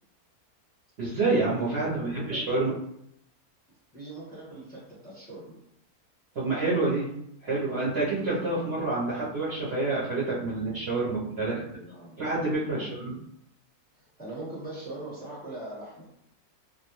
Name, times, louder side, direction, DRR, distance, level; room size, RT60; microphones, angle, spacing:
voice 1, 1.0-2.7 6.3-7.1 7.4-11.5 12.2-13.1, right 3 dB, 55° right, -8 dB, 0.8 m, -28 dB
voice 2, 1.7-2.8 3.9-5.5 11.4-12.2 12.7-13.1 13.9-16.1, right 2 dB, 5° left, -7 dB, 0.8 m, -41 dB
2.5 x 2.1 x 2.9 m, 0.74 s
omnidirectional pair, 1.6 m